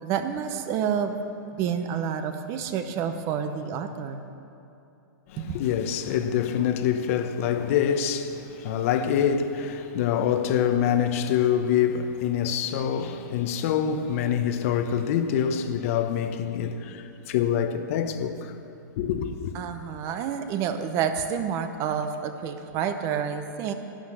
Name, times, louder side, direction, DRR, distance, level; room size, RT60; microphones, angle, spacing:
voice 1, 0.0-1.2 1.6-4.2 5.4-5.6 19.5-23.7, right 8 dB, 25° right, 0.8 m, -29 dB
voice 2, 5.3-18.5 19.0-19.5, left 8 dB, 45° left, 0.9 m, -25 dB
11.5 x 11.5 x 7.7 m
hypercardioid pair, 155°, 11 cm